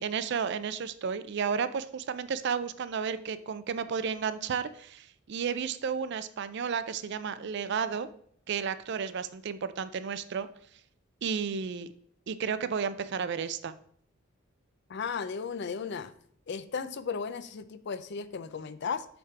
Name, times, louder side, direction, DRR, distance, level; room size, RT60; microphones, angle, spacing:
voice 1, 0.0-8.1 8.5-10.5 11.2-11.9 12.3-13.7, right 6 dB, 55° right, 13 dB, 0.4 m, -32 dB
voice 2, 14.9-16.1 16.5-19.1, left 5 dB, 55° left, 13 dB, 0.4 m, -35 dB
7.1 x 3.6 x 4.7 m, 0.62 s
head